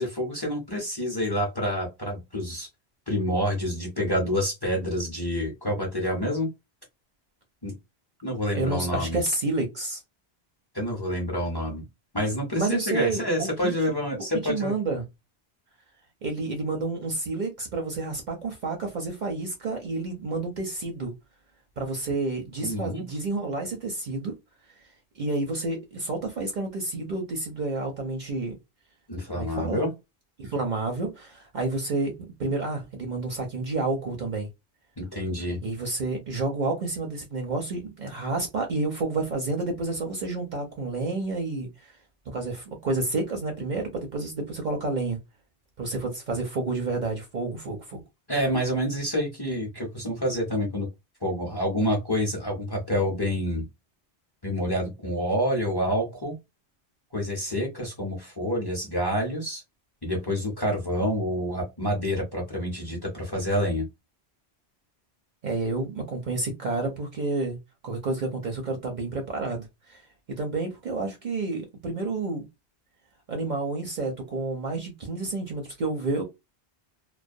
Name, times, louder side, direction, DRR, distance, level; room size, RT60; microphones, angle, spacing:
voice 1, 0.0-2.7 3.1-6.5 7.6-7.7 8.2-9.2 10.7-11.8 12.1-14.7 22.6-23.1 29.1-29.9 35.0-35.6 48.3-50.9 51.2-53.7 54.4-56.3 57.1-59.6 60.0-63.8, equal, 30° left, 0.6 m, -28 dB
voice 2, 8.5-10.0 12.6-13.7 14.4-15.1 16.2-21.1 21.8-24.3 25.2-28.6 29.3-29.8 30.4-32.1 32.4-34.5 35.6-42.0 42.3-45.2 45.8-48.0 65.4-67.6 67.8-70.0 70.4-72.5 73.3-76.2, right 3 dB, 55° right, 0.6 m, -30 dB
2.3 x 2.1 x 2.5 m
omnidirectional pair, 1.1 m